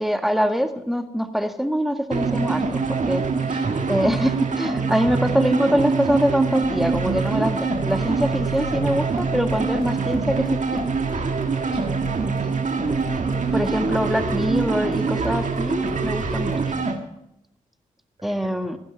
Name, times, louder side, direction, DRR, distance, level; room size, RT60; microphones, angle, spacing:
voice 1, 0.0-3.2 3.9-10.8 13.5-16.6 18.2-18.8, equal, ahead, 7 dB, 1.8 m, -24 dB
sound 1, 2.1-17.0, right 4 dB, 60° right, 1.7 m, -24 dB
voice 2, 3.5-3.9 4.2-4.5 5.3-5.4 11.5-12.2 16.6-16.9 18.2-18.7, right 3 dB, 40° right, -2 dB, 4.6 m, -38 dB
sound 2, 6.6-16.8, left 4 dB, 35° left, 2.8 m, -40 dB
15.0 x 12.0 x 4.5 m, 0.82 s
supercardioid pair, 40°, 15 cm